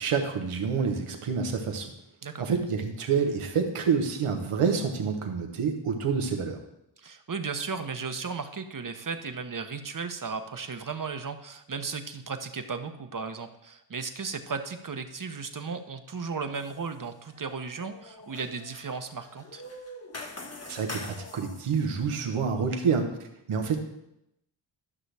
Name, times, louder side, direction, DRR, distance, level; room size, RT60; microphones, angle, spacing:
voice 1, 0.0-1.9 2.4-6.6 20.7-23.1 23.5-23.8, right 6 dB, 90° right, 4 dB, 1.2 m, -27 dB
voice 2, 7.0-19.6, right 5 dB, 40° right, 8 dB, 1.0 m, -35 dB
sound 1, 16.5-16.9 17.2-21.9, left 2 dB, 30° left, 1.4 m, -44 dB
12.0 x 6.1 x 3.4 m, 0.83 s
cardioid pair, 45°, 49 cm